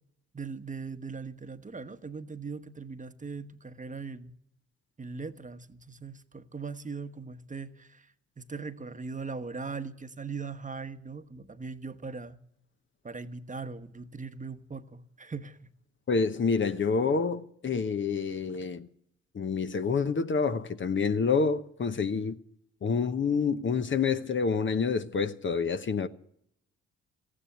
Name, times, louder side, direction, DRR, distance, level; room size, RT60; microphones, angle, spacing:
voice 1, 0.3-4.3 5.0-8.1 8.4-12.4 13.0-15.6, right 4 dB, 25° right, 1.1 m, -40 dB
voice 2, 16.1-18.9 19.3-22.4 22.8-26.1, left 5 dB, 40° left, 1.0 m, -28 dB
14.5 x 9.9 x 9.2 m
hypercardioid pair, 50°, 31 cm